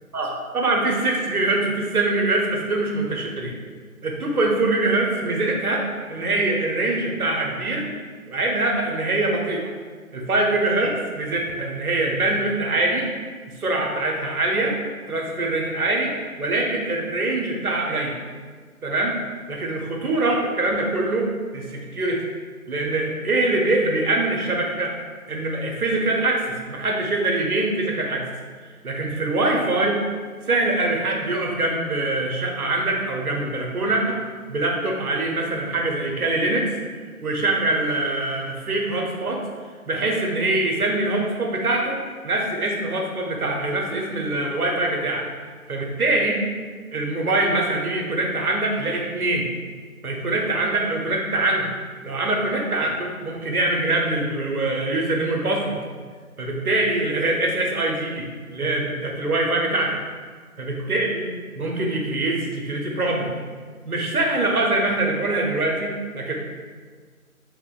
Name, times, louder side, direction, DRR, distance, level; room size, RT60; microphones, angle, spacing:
voice 1, 0.1-3.5 4.0-7.9 8.3-9.7 10.1-13.1 13.5-14.7 15.1-18.2 18.8-19.1 19.5-21.3 21.5-22.3 22.7-24.9 25.3-28.2 28.8-30.0 30.5-34.2 34.5-36.7 37.2-39.4 39.9-42.0 42.2-45.2 45.7-46.4 46.9-49.5 50.0-51.7 52.0-55.8 56.4-60.0 60.6-61.3 61.5-63.3 63.9-66.3, right 2 dB, 80° right, 0 dB, 0.8 m, -23 dB
3.6 x 2.9 x 2.3 m, 1.5 s
figure-of-eight pair, 175°, 44 cm